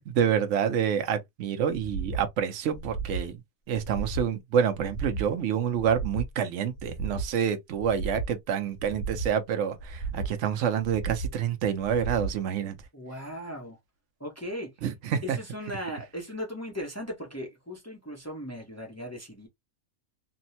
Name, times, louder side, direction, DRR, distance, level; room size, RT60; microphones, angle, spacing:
voice 1, 0.0-3.4 3.7-12.8 14.8-15.4, right 8 dB, 70° right, 0.9 m, -28 dB
sound 1, 1.7-2.3 2.7-3.3 3.7-4.3 4.7-5.3 5.7-6.3 6.7-7.3 7.7-8.3 8.7-9.3 9.7-10.3 10.8-11.3 11.8-12.4 12.8-12.9, right 4 dB, 90° left, 1.3 m, -34 dB
voice 2, 12.9-13.8 14.2-14.7 15.2-19.5, equal, 15° left, 0.6 m, -37 dB
3.5 x 2.0 x 2.7 m
omnidirectional pair, 1.4 m